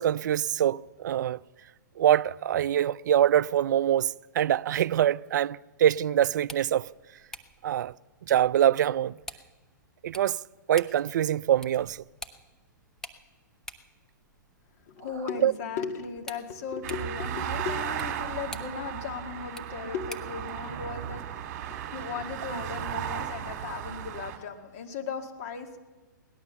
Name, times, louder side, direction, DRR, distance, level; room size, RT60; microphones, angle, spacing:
voice 1, 0.0-1.4 2.0-6.9 7.6-7.9 8.3-9.1 10.0-10.4 10.7-12.0 15.4-15.5, right 11 dB, 65° right, 0.4 m, -24 dB
sound 1, 6.3-20.4, left 1 dB, 5° left, 0.8 m, -49 dB
voice 2, 14.9-25.8, left 6 dB, 45° left, 2.0 m, -37 dB
sound 2, 16.8-24.4, right 10 dB, 45° right, 2.1 m, -35 dB
17.5 x 11.5 x 7.0 m
hypercardioid pair, 135°, 11 cm